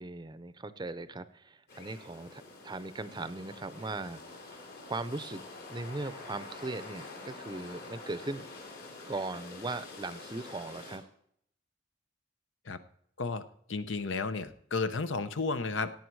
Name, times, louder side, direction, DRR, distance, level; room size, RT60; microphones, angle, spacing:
voice 1, 0.0-5.4 5.7-8.5 9.1-11.0, right 2 dB, 25° right, 14 dB, 0.6 m, -39 dB
sound 1, 1.7-11.0, left 3 dB, 55° left, 3.7 m, -47 dB
voice 2, 13.7-15.9, left 4 dB, 80° left, 11 dB, 0.8 m, -32 dB
17.0 x 8.7 x 4.7 m, 0.68 s
head